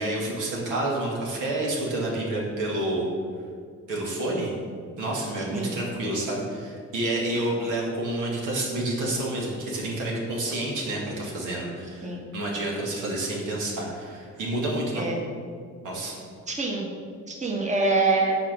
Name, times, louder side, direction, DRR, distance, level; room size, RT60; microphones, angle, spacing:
voice 1, 0.0-3.1 3.9-4.5 5.0-15.1 15.8-16.2, right 1 dB, 85° right, -3 dB, 1.9 m, -29 dB
voice 2, 16.5-16.9 17.3-18.4, right 3 dB, 25° right, -1 dB, 1.3 m, -25 dB
5.9 x 4.8 x 6.2 m, 2.1 s
cardioid pair, 90°, 30 cm